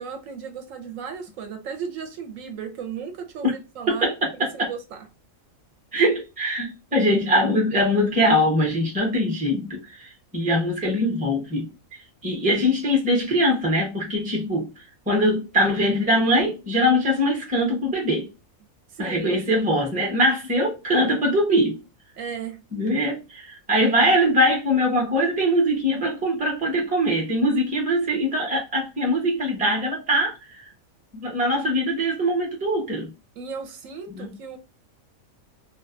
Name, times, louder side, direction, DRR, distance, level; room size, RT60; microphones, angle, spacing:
voice 1, 0.0-4.0 4.4-5.0 18.9-19.4 22.2-22.6 33.4-34.6, right 6 dB, 75° right, 0.9 m, -35 dB
voice 2, 3.9-4.7 5.9-11.7 12.2-14.7 15.1-18.3 19.0-21.8 22.7-30.6 31.2-33.1 34.2-34.3, equal, 10° right, 0.5 m, -22 dB
2.5 x 2.3 x 2.4 m
omnidirectional pair, 1.5 m